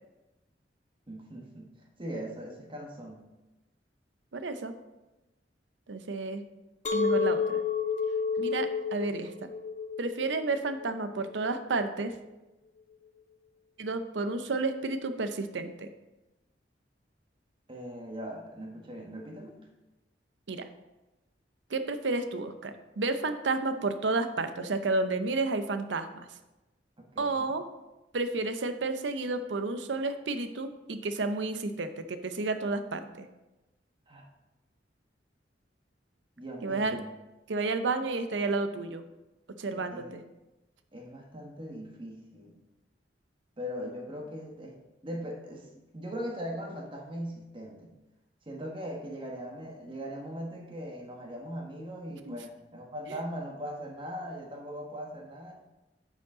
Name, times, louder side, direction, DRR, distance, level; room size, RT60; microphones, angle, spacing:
voice 1, 1.1-1.7 2.0-3.3 17.7-19.6 27.0-27.5 34.1-34.3 36.4-37.1 39.7-40.1 40.9-42.5 43.6-44.7 45.0-47.9 48.5-55.5, equal, 30° right, 0 dB, 1.3 m, -40 dB
voice 2, 4.3-4.7 5.9-6.4 6.9-7.6 8.4-9.5 10.0-12.2 13.8-15.9 20.5-20.7 21.7-26.3 27.2-27.6 28.1-33.3 36.6-37.0 37.5-39.0 39.6-40.2 52.2-52.4 53.1-53.2, right 3 dB, 85° right, 9 dB, 0.6 m, -31 dB
Chink clink, 6.8-12.0, left 5 dB, 45° left, 0.6 m, -31 dB
9.5 x 5.1 x 3.8 m, 1.0 s
head